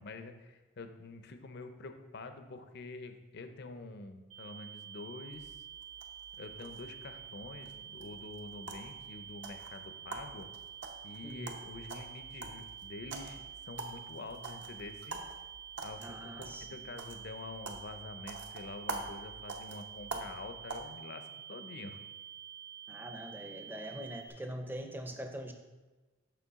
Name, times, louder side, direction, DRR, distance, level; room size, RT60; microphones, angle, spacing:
voice 1, 0.0-5.7 6.4-10.5 11.0-15.2 15.8-22.0, left 3 dB, 55° left, 8 dB, 0.6 m, -47 dB
sound 1, 4.3-24.3, right 9 dB, 80° right, 1.7 m, -49 dB
sound 2, 5.3-20.8, right 3 dB, 60° right, 0.8 m, -46 dB
voice 2, 11.2-11.5 16.0-16.7 22.9-25.5, equal, 10° right, 4 dB, 0.6 m, -43 dB
6.9 x 5.9 x 3.6 m, 1.2 s
head